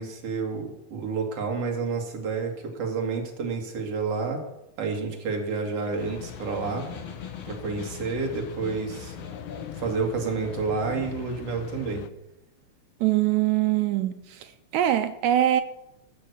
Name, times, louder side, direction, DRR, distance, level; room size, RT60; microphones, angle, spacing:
voice 1, 0.0-4.4 4.8-6.9 7.5-9.3 9.8-12.0, right 4 dB, 50° right, 2.8 m, -29 dB
Snare drum, 5.1-10.1, left 5 dB, 45° left, 2.4 m, -44 dB
sound 1, 6.0-12.1, left 12 dB, 80° left, 2.0 m, -42 dB
sound 2, 8.8-11.5, left 6 dB, 60° left, 1.8 m, -43 dB
voice 2, 13.0-15.6, right 12 dB, 80° right, 1.7 m, -23 dB
14.5 x 6.3 x 8.0 m
omnidirectional pair, 3.7 m